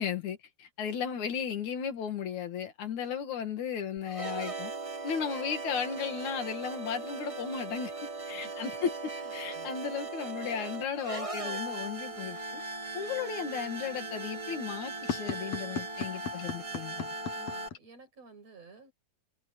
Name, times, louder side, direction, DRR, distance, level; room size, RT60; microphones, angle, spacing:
voice 1, 0.0-4.7 5.0-7.9 8.3-8.9 9.3-12.6 12.9-17.1, left 7 dB, 80° left, 3.5 m, -35 dB
sound 1, 4.0-17.7, right 3 dB, 25° right, 0.8 m, -39 dB
voice 2, 9.1-9.7 17.3-18.9, right 3 dB, 60° right, 7.7 m, -53 dB
sound 2, 14.5-17.8, left 7 dB, 60° left, 2.5 m, -36 dB
omnidirectional pair, 3.3 m